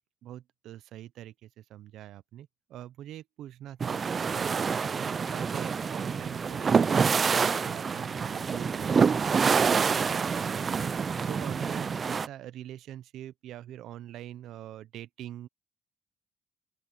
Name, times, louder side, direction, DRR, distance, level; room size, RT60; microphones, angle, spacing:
voice 1, 0.2-15.5, right 12 dB, 75° right, 0.6 m, -44 dB
sound 1, 3.8-12.3, right 5 dB, 30° right, 0.4 m, -27 dB
open air
cardioid pair, 140°, 0 cm